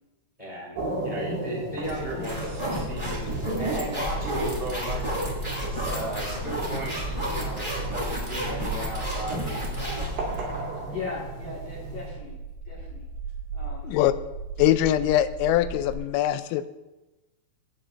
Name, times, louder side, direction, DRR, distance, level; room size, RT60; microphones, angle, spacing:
voice 1, 0.4-3.3 3.6-5.0 5.6-6.9 7.2-9.4, equal, 25° left, -5 dB, 0.8 m, -36 dB
sound 1, 0.7-12.1, right 3 dB, 60° right, 3.7 m, -36 dB
sound 2, 1.8-10.6, equal, 20° right, 1.0 m, -31 dB
sound 3, 9.7-16.0, right 4 dB, 85° right, 4.0 m, -38 dB
voice 2, 10.9-12.4 12.6-13.0 13.5-14.0, left 4 dB, 65° left, -5 dB, 1.5 m, -38 dB
voice 3, 14.6-16.7, left 12 dB, 90° left, 13 dB, 3.2 m, -22 dB
23.0 x 9.3 x 2.5 m, 1.1 s
omnidirectional pair, 5.8 m